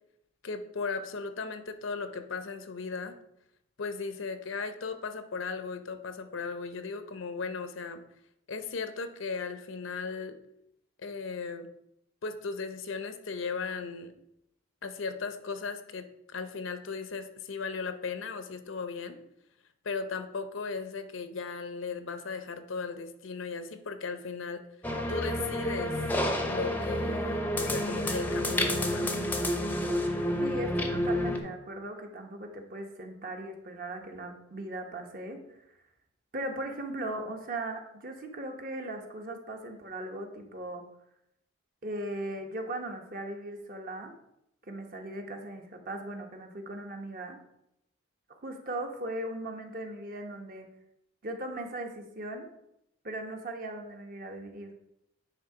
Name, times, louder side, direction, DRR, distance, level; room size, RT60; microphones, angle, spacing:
voice 1, 0.4-3.1 3.8-8.0 8.5-10.4 11.0-11.7 12.2-14.1 14.8-19.2 19.8-24.6 25.1-26.0 26.4-29.1, left 4 dB, 75° left, 9 dB, 0.7 m, -36 dB
sound 1, 24.8-31.4, left 1 dB, 10° left, 0.6 m, -29 dB
voice 2, 30.4-35.6 36.3-40.8 41.8-44.1 44.7-47.4 48.4-50.7 51.2-52.5 53.0-54.7, right 1 dB, 45° right, 4 dB, 1.0 m, -38 dB
9.3 x 3.5 x 4.8 m, 0.80 s
head